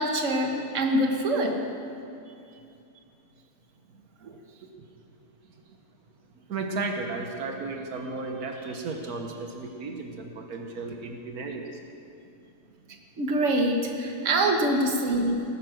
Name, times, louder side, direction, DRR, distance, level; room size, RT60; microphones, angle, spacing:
voice 1, 0.0-1.6 13.2-15.4, right 1 dB, 55° right, 2 dB, 1.7 m, -24 dB
voice 2, 2.2-2.6 3.9-4.4 5.4-5.8 6.5-11.8, right 3 dB, 80° right, 3 dB, 1.7 m, -35 dB
18.5 x 10.0 x 6.4 m, 2.6 s
omnidirectional pair, 1.6 m